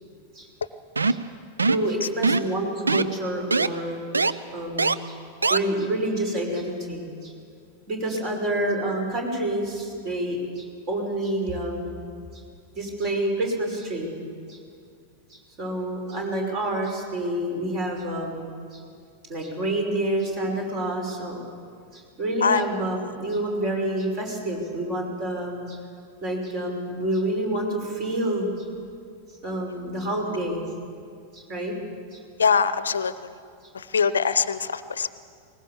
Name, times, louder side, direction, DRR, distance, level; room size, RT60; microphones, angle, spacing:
sound 1, 1.0-1.3 1.6-1.9 2.2-2.5 2.9-3.0 3.5-3.7 4.1-4.3 4.8-4.9 5.4-5.6, right 3 dB, 75° right, 0.6 m, -21 dB
voice 1, 1.7-5.2 5.5-7.3 7.9-12.0 12.3-12.4 12.8-14.1 14.5-14.6 15.3-18.8 19.3-21.4 21.9-25.8 26.2-28.7 29.4-30.6 31.3-31.7 32.1-32.2, right 1 dB, 35° right, 2 dB, 5.7 m, -28 dB
voice 2, 32.4-33.1 33.7-35.1, left 6 dB, 70° left, 15 dB, 0.7 m, -22 dB
21.0 x 19.5 x 7.1 m, 2.3 s
figure-of-eight pair, 90°, 0 cm